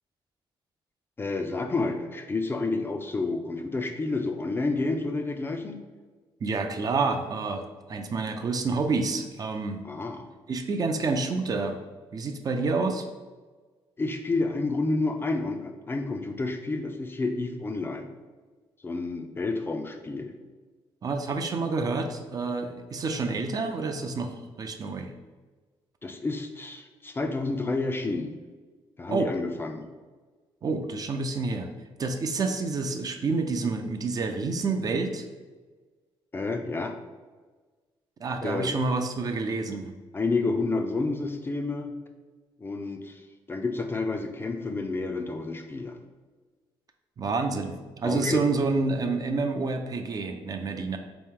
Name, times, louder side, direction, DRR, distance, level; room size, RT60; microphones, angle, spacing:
voice 1, 1.2-5.8 9.8-10.3 14.0-18.1 18.8-20.3 26.0-28.4 29.0-29.9 36.3-36.9 38.4-38.7 40.1-42.0 42.6-46.0 48.0-48.4, left 3 dB, 25° left, 5 dB, 0.4 m, -30 dB
voice 2, 6.4-9.8 10.5-11.8 12.1-13.0 21.0-25.1 29.1-29.3 30.6-31.7 32.0-35.3 38.2-39.9 47.2-51.0, right 3 dB, 40° right, 6 dB, 0.4 m, -28 dB
3.6 x 3.0 x 3.6 m, 1.4 s
cardioid pair, 95°, 10 cm